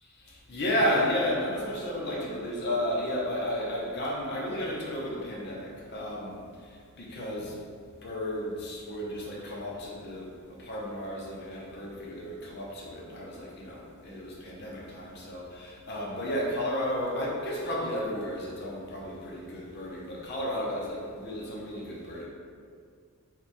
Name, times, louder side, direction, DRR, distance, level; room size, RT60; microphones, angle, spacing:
voice 1, 0.2-6.4 7.0-7.6 8.0-22.3, equal, 55° left, -4 dB, 0.7 m, -33 dB
3.1 x 2.2 x 4.1 m, 2.1 s
head